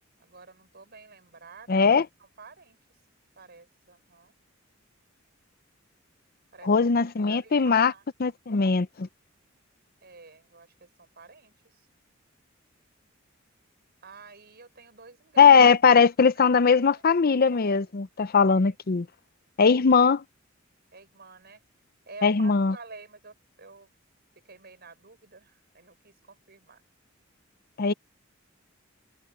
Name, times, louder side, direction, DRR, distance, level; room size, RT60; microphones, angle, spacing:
voice 1, 0.2-1.9 2.2-2.8 3.4-4.3 6.5-6.7 7.3-8.0 10.0-11.9 14.0-15.6 16.4-16.5 16.9-17.0 18.5-18.7 19.9-20.0 20.9-21.6 22.1-23.9 24.5-26.8, right 4 dB, 55° right, 5.4 m, -49 dB
voice 2, 1.7-2.1 6.6-7.9 8.2-9.1 15.4-19.1 19.6-20.2 22.2-22.8 27.8-27.9, left 5 dB, 50° left, 0.6 m, -20 dB
head